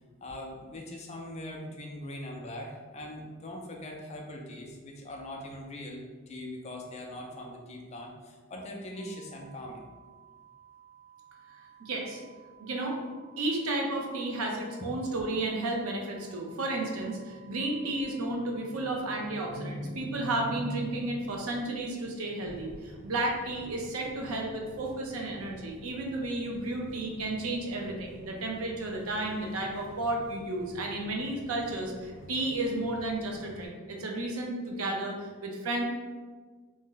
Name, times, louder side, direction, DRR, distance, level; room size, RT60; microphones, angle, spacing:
voice 1, 0.2-9.8, left 1 dB, 30° left, 0 dB, 0.3 m, -41 dB
sound 1, 8.9-19.0, right 9 dB, 40° right, 0.7 m, -56 dB
voice 2, 11.5-12.2 12.6-13.0 13.4-35.8, right 2 dB, 80° right, 0 dB, 0.6 m, -32 dB
sound 2, 22.4-33.7, equal, 5° right, 0.8 m, -50 dB
2.6 x 2.0 x 3.7 m, 1.4 s
head